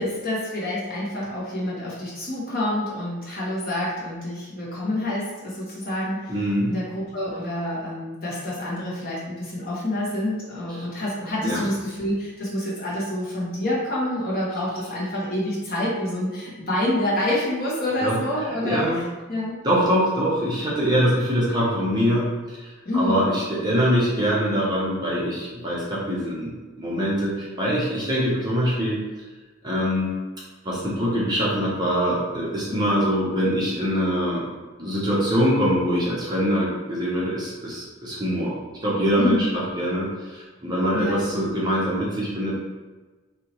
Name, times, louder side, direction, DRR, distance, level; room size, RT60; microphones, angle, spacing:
voice 1, 0.0-6.3 6.6-19.6 22.8-23.3 39.2-39.6 40.9-41.3, left 1 dB, 45° left, -7 dB, 1.2 m, -27 dB
voice 2, 6.3-6.7 11.4-11.6 18.0-18.2 18.5-19.0 19.6-26.5 26.8-29.0 29.6-30.1 30.6-34.5 34.8-42.6, equal, 20° right, -6 dB, 0.7 m, -23 dB
4.0 x 2.8 x 3.0 m, 1.3 s
head